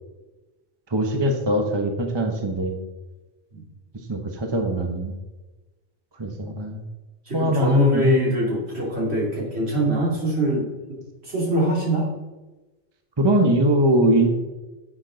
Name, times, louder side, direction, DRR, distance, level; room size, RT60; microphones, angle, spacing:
voice 1, 0.9-2.8 4.1-5.1 6.2-6.8 7.3-8.2 13.2-14.3, right 1 dB, 25° right, 4 dB, 1.0 m, -21 dB
voice 2, 7.3-11.0 11.2-12.1, right 1 dB, 65° right, -3 dB, 3.0 m, -23 dB
10.0 x 8.5 x 3.9 m, 1.2 s
omnidirectional pair, 1.2 m